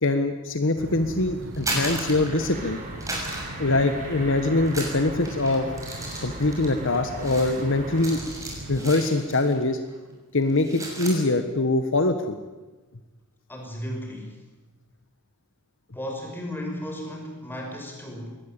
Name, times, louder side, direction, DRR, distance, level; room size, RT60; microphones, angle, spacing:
voice 1, 0.0-2.8 3.6-5.7 6.2-8.2 8.7-9.8 10.3-12.4, left 2 dB, 60° left, 8 dB, 1.5 m, -23 dB
sound 1, 0.8-8.9, right 1 dB, 55° right, 1.7 m, -38 dB
sound 2, 1.4-2.7 3.0-4.3 4.6-9.6 9.9-10.1 10.4-11.2, right 2 dB, 15° right, 6.4 m, -35 dB
sound 3, 2.5-8.2, right 2 dB, 40° right, 6.1 m, -41 dB
voice 2, 13.5-14.4 15.9-18.4, equal, 10° left, 1 dB, 5.8 m, -35 dB
22.0 x 18.5 x 9.0 m, 1.2 s
head